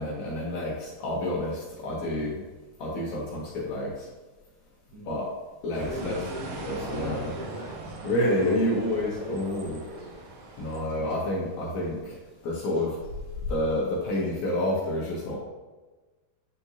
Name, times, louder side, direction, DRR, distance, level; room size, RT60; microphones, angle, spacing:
voice 1, 0.0-2.4 2.8-4.1 5.0-5.3 5.6-6.2 6.6-7.3 8.0-9.8 10.6-12.2 12.4-13.0 13.5-15.4, left 1 dB, 65° left, -4 dB, 2.0 m, -29 dB
voice 2, 4.9-5.2 5.7-10.1 10.9-11.4, equal, 60° right, -7 dB, 1.7 m, -40 dB
sound 1, 5.7-10.8, right 2 dB, 85° right, 2.9 m, -41 dB
sound 2, 8.3-14.4, left 3 dB, 30° right, 1.5 m, -44 dB
9.2 x 4.5 x 2.7 m, 1.2 s
omnidirectional pair, 4.2 m